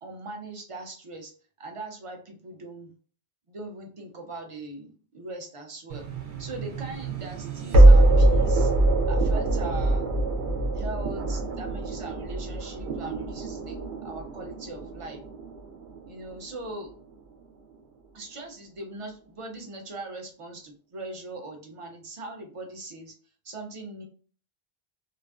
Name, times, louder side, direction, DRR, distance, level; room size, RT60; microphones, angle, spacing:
voice 1, 0.0-1.3 1.6-2.9 3.5-6.0 6.4-8.7 9.1-10.2 10.7-13.8 14.0-15.2 16.1-16.9 18.1-23.1 23.4-24.1, right 2 dB, 50° right, 2 dB, 0.4 m, -40 dB
sound 1, 5.9-16.9, right 2 dB, 85° right, 0.9 m, -23 dB
2.4 x 2.3 x 2.3 m, 0.42 s
omnidirectional pair, 1.1 m